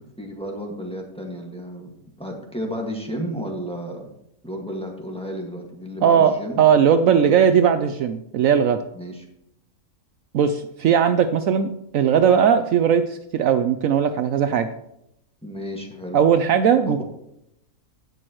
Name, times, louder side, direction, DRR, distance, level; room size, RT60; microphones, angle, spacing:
voice 1, 0.0-4.1 4.4-6.6 7.0-7.4 8.9-9.3 15.4-16.2 16.9-17.0, equal, 5° left, 0 dB, 1.7 m, -32 dB
voice 2, 6.0-8.8 10.3-14.7 16.1-17.0, right 8 dB, 70° right, 9 dB, 0.9 m, -18 dB
17.0 x 6.2 x 3.1 m, 0.80 s
omnidirectional pair, 1.6 m